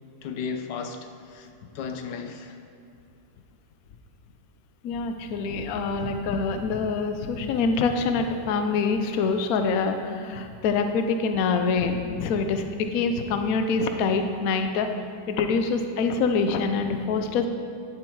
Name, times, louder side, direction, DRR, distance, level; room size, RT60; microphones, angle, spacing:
voice 1, 0.2-1.5 1.7-2.6, left 5 dB, 65° left, 6 dB, 1.2 m, -34 dB
voice 2, 4.8-14.9 15.3-17.5, left 4 dB, 85° left, 6 dB, 0.7 m, -25 dB
10.5 x 7.4 x 4.6 m, 2.5 s
omnidirectional pair, 2.4 m